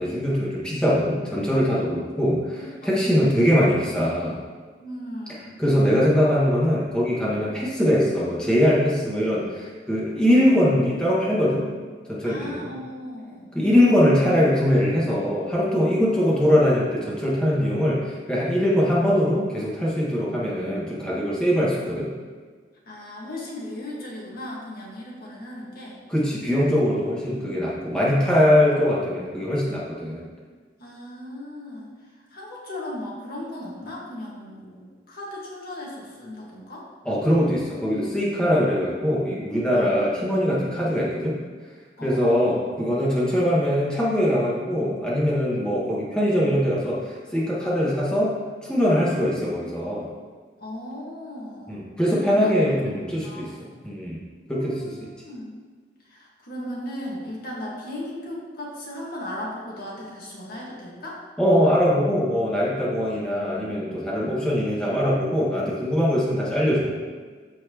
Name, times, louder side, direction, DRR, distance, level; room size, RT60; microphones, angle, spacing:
voice 1, 0.0-4.4 5.6-11.7 12.1-12.7 13.5-22.1 26.1-30.3 37.0-41.4 42.0-48.3 48.6-50.1 51.7-53.5 53.8-54.2 54.5-54.9 61.4-67.0, equal, 5° left, -7 dB, 1.8 m, -22 dB
voice 2, 1.9-3.6 4.8-5.5 12.2-13.5 22.9-26.0 27.3-28.0 30.8-36.9 39.7-40.0 42.0-42.6 45.5-45.6 50.6-51.8 52.1-52.8 53.2-53.7 54.5-55.6 56.0-61.2, left 1 dB, 55° left, -4 dB, 1.8 m, -37 dB
13.5 x 4.6 x 3.1 m, 1.5 s
head